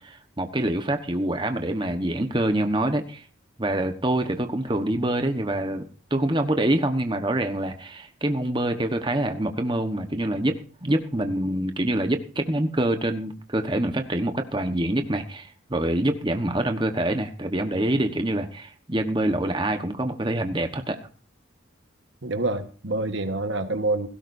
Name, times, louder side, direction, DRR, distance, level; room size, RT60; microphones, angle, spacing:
voice 1, 0.0-3.3 3.6-21.0, right 1 dB, 25° right, 6 dB, 1.2 m, -26 dB
voice 2, 22.2-24.1, right 2 dB, 65° right, 8 dB, 1.4 m, -27 dB
17.5 x 17.0 x 2.7 m, 0.38 s
head